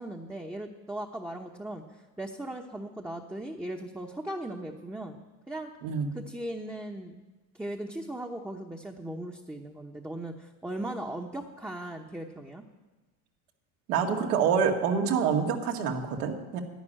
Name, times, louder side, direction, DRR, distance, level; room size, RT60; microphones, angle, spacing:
voice 1, 0.0-5.2 5.5-5.7 6.1-7.2 7.5-12.6, right 1 dB, 5° right, 1 dB, 1.0 m, -38 dB
voice 2, 5.8-6.1 13.9-16.6, right 6 dB, 80° right, 2 dB, 2.2 m, -26 dB
11.5 x 10.0 x 8.8 m, 1.2 s
supercardioid pair, 105°, 45 cm